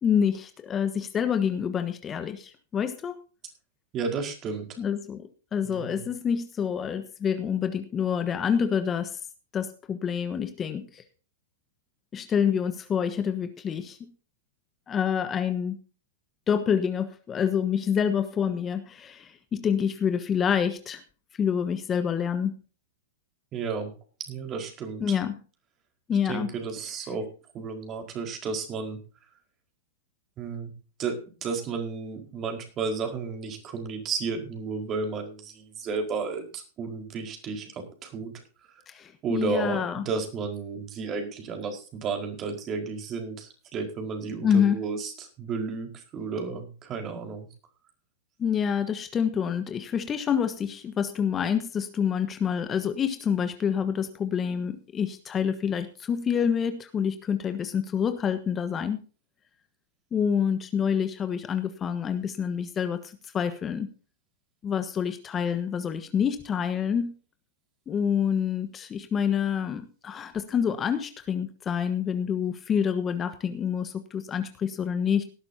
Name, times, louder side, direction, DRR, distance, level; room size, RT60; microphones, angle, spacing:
voice 1, 0.0-3.2 4.8-9.2 9.5-11.0 12.1-14.1 14.9-15.8 16.5-21.0 21.4-22.5 25.0-25.4 26.1-26.5 38.9-40.1 44.4-44.8 48.4-59.0 60.1-63.9 64.6-67.1 67.9-75.3, left 7 dB, 25° left, 9 dB, 1.3 m, -27 dB
voice 2, 3.9-4.7 5.6-6.1 23.5-23.9 24.3-25.1 26.3-27.3 27.5-29.0 30.4-30.7 31.0-38.3 39.2-47.5, right 5 dB, 35° right, 4 dB, 4.8 m, -32 dB
18.5 x 12.0 x 2.8 m, 0.35 s
hypercardioid pair, 105°, 0 cm